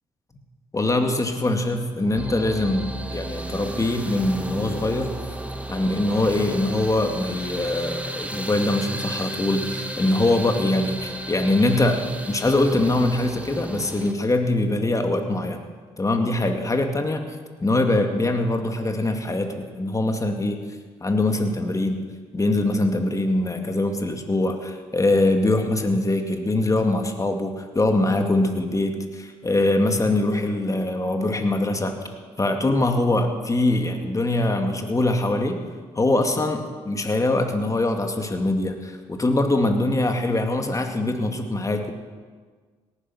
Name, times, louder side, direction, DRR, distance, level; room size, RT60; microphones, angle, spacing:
voice 1, 0.7-5.1 5.7-12.0 12.3-15.6 16.0-17.3 17.6-20.6 21.0-22.0 22.3-31.9 32.4-35.6 35.9-41.9, left 2 dB, 25° left, 5 dB, 2.3 m, -23 dB
sound 1, 2.1-14.1, right 1 dB, 10° right, 1.8 m, -33 dB
18.0 x 10.0 x 6.1 m, 1.5 s
supercardioid pair, 55°, 13 cm